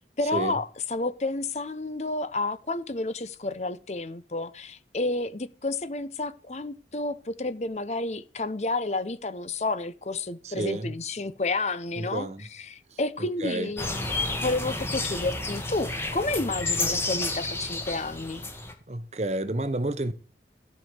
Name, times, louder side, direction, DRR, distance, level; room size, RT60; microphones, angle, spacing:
voice 1, 0.2-14.2 14.4-18.4, left 2 dB, 40° left, 0.7 m, -30 dB
voice 2, 10.4-11.0 12.0-12.4 13.4-13.7 18.9-20.1, right 2 dB, 40° right, 0.9 m, -30 dB
sound 1, 13.8-18.7, left 2 dB, 15° left, 1.6 m, -30 dB
14.0 x 5.3 x 8.0 m
head